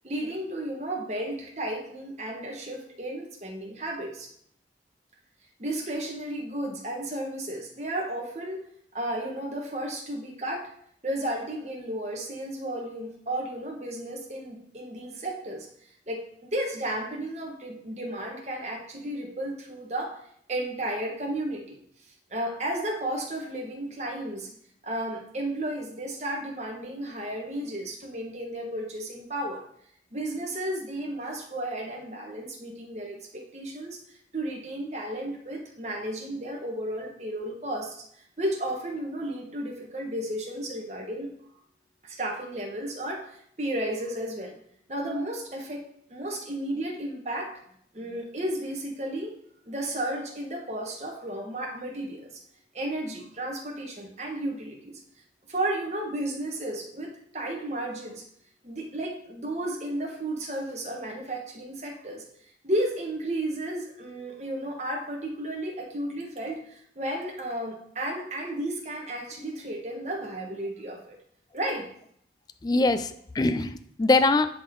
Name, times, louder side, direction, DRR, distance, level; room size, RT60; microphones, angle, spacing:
voice 1, 0.0-4.3 5.6-8.6 8.9-10.7 11.0-15.7 16.1-20.1 20.5-21.8 22.3-24.5 24.8-29.6 30.1-34.0 34.3-38.0 38.4-41.3 42.0-44.5 44.9-45.8 46.1-47.5 47.9-49.3 49.7-52.4 52.7-55.0 55.5-58.2 58.6-62.2 62.6-71.2 71.5-71.9, right 1 dB, 40° right, 0 dB, 1.4 m, -33 dB
voice 2, 72.6-74.5, left 2 dB, 20° left, 11 dB, 0.3 m, -23 dB
11.0 x 3.9 x 3.8 m, 0.67 s
head